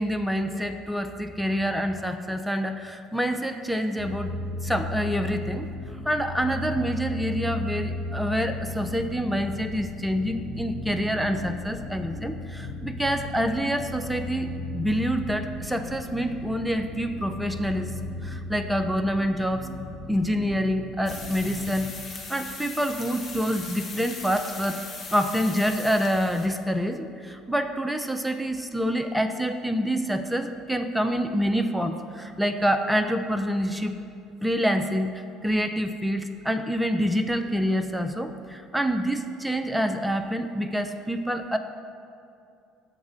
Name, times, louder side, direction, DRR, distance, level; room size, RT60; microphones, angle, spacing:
voice 1, 0.0-5.7 6.1-17.9 18.2-19.7 20.1-21.9 22.3-24.8 25.1-34.0 34.4-41.6, equal, 5° right, 6 dB, 0.4 m, -27 dB
sound 1, 4.0-21.9, left 2 dB, 10° left, 1.1 m, -36 dB
sound 2, 21.1-26.5, left 3 dB, 35° left, 0.9 m, -39 dB
7.2 x 4.0 x 4.8 m, 2.5 s
hypercardioid pair, 60°, 0 cm